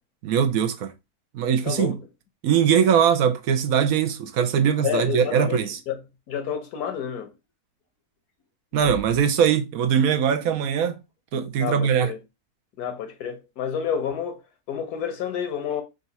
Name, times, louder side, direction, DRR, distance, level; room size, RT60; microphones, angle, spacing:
voice 1, 0.2-0.9 1.3-2.0 2.4-5.8 8.7-11.0 11.3-12.1, right 8 dB, 75° right, 1.0 m, -21 dB
voice 2, 1.6-2.0 4.8-5.6 5.9-6.0 6.3-7.3 11.6-12.2 12.8-14.4 14.7-15.8, left 8 dB, 85° left, 1.4 m, -29 dB
sound 1, 7.8-7.9 8.2-8.4 8.7-9.4 11.1-11.2 13.0-13.2 14.0-14.1, left 4 dB, 65° left, 1.6 m, -40 dB
3.9 x 2.5 x 4.0 m
omnidirectional pair, 1.6 m